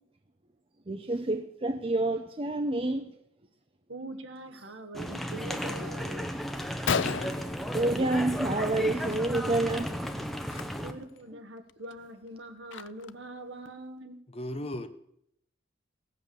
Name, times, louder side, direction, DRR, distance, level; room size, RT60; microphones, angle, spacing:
voice 1, 0.9-3.1 7.7-9.9 10.5-10.6, right 2 dB, 25° right, 6 dB, 0.7 m, -28 dB
voice 2, 3.9-6.3 10.8-14.2, right 1 dB, 70° right, 7 dB, 1.6 m, -43 dB
sound 1, 4.9-10.9, equal, ahead, 0.9 m, -34 dB
Gunshot gunfire, 6.9-8.5 8.8-9.2 9.4-9.6 10.4-10.6 11.2-11.3 11.7-13.3, left 7 dB, 65° left, 0.5 m, -34 dB
voice 3, 14.3-14.9, left 1 dB, 30° left, 10 dB, 0.8 m, -35 dB
17.0 x 8.4 x 7.0 m, 0.73 s
head